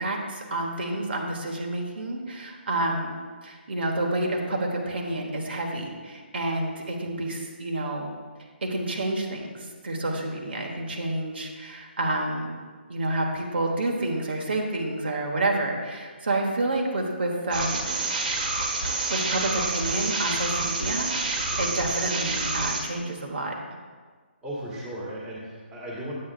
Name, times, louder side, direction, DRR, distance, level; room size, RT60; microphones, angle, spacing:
voice 1, 0.0-8.1 8.6-12.6 12.9-18.0 19.1-23.5, right 2 dB, 70° right, 1 dB, 1.3 m, -29 dB
sound 1, 17.5-22.8, right 3 dB, 50° right, 1.5 m, -28 dB
voice 2, 24.4-26.1, right 1 dB, 10° right, -6 dB, 1.5 m, -36 dB
8.8 x 8.5 x 2.4 m, 1.5 s
hypercardioid pair, 165°, 6 cm